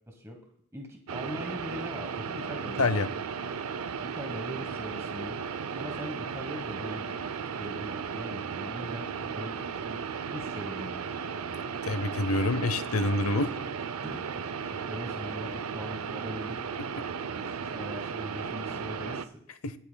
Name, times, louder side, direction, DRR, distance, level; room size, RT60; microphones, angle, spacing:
voice 1, 0.1-0.4 0.7-3.0 3.9-5.4 5.7-11.1 14.0-16.7 17.3-19.4, equal, 15° right, 3 dB, 1.2 m, -41 dB
sound 1, 1.1-19.3, right 6 dB, 85° right, 0.6 m, -35 dB
voice 2, 11.9-13.5 19.6-19.7, left 2 dB, 90° left, 13 dB, 0.8 m, -26 dB
19.5 x 8.3 x 2.3 m, 0.70 s
head